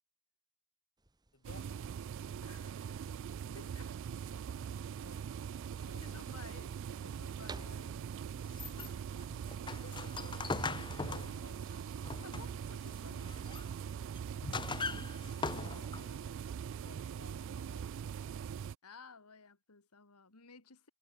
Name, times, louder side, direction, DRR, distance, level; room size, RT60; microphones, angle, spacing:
Closet Door Slide, 1.0-18.0, right 3 dB, 20° right, 1.2 m, -60 dB
voice 1, 1.3-2.0 4.9-5.4 5.9-6.6 7.5-8.1 9.7-12.2 15.1-18.4, left 3 dB, 55° left, 3.6 m, -59 dB
sound 1, 1.4-18.8, right 7 dB, 55° right, 0.3 m, -42 dB
voice 2, 2.4-3.0 3.5-4.0 6.0-7.9 8.2-9.1 12.2-13.4 18.8-20.9, left 4 dB, 85° left, 2.2 m, -56 dB
sound 2, 8.5-12.7 13.1-13.7 14.2-16.1, left 4 dB, 20° left, 0.7 m, -40 dB
head